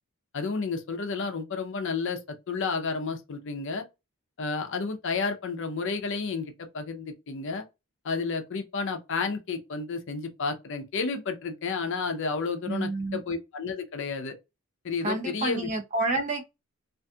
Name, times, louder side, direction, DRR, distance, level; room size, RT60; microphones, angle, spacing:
voice 1, 0.3-3.8 4.4-7.6 8.0-14.4 14.8-15.7, left 4 dB, 55° left, 0.5 m, -31 dB
voice 2, 12.7-13.2 15.0-16.4, right 2 dB, 30° right, 0.6 m, -29 dB
2.5 x 2.3 x 2.6 m
head